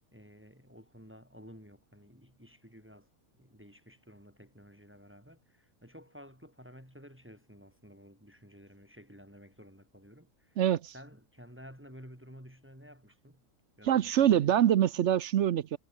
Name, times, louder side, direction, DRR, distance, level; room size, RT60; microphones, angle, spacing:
voice 1, 0.1-10.6 10.9-13.4 13.8-14.6, equal, 5° right, 7.1 m, -53 dB
voice 2, 10.6-10.9 13.8-15.8, right 10 dB, 60° right, 0.8 m, -25 dB
omnidirectional pair, 1.6 m